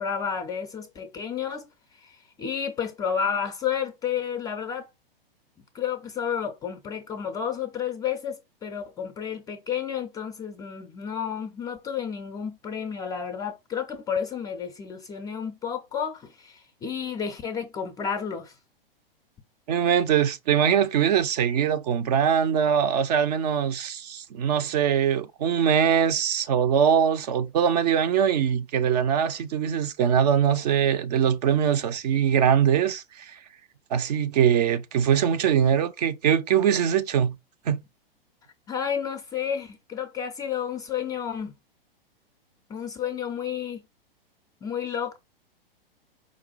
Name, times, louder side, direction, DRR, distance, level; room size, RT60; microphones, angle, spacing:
voice 1, 0.0-1.7 2.0-4.9 5.6-18.5 38.7-41.5 42.7-43.8 44.6-45.2, left 7 dB, 10° left, 0.4 m, -31 dB
voice 2, 19.7-33.4 33.9-37.4 37.7-37.8, right 8 dB, 45° right, 0.5 m, -22 dB
4.9 x 2.2 x 3.9 m
figure-of-eight pair, 110°, 30 cm